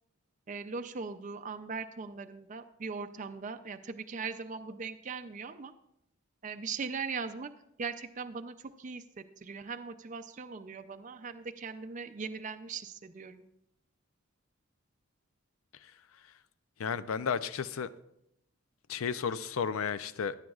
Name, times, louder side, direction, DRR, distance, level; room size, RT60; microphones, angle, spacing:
voice 1, 0.5-5.7 6.4-7.5 7.8-13.4, right 5 dB, 35° right, 0.4 m, -40 dB
voice 2, 15.7-16.4 16.8-17.9 18.9-20.4, left 6 dB, 85° left, 0.5 m, -34 dB
16.0 x 10.5 x 2.4 m
head